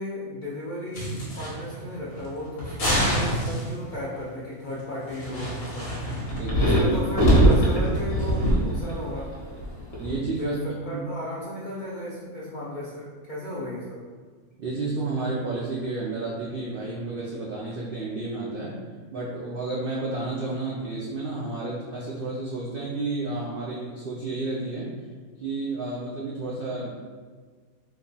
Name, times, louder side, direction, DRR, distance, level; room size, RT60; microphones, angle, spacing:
voice 1, 0.0-5.9 6.6-9.4 10.4-14.0, left 1 dB, 75° left, -6 dB, 0.4 m, -35 dB
sound 1, 0.9-1.8 2.1-2.3 2.6-3.9 5.1-10.2, right 1 dB, 50° left, 1.1 m, -23 dB
voice 2, 6.3-7.0 10.0-10.6 10.9-11.0 14.6-18.7 19.1-24.9 25.4-27.0, right 3 dB, 80° right, -5 dB, 0.5 m, -31 dB
2.9 x 2.2 x 3.8 m, 1.6 s
omnidirectional pair, 1.5 m